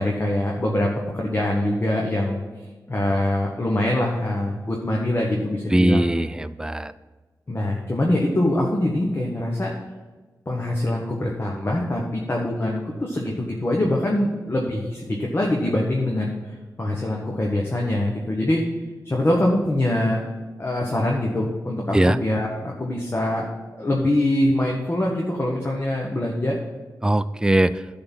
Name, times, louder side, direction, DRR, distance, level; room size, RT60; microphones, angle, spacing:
voice 1, 0.0-2.4 2.9-6.1 7.5-9.7 10.5-18.6 19.0-20.2 20.6-23.5 23.8-26.6, left 1 dB, 35° left, -1 dB, 1.2 m, -24 dB
voice 2, 5.7-6.9 21.9-22.2 27.0-27.7, right 1 dB, 10° right, 13 dB, 0.3 m, -20 dB
10.5 x 3.9 x 7.4 m, 1.3 s
wide cardioid pair, 85°, 7 cm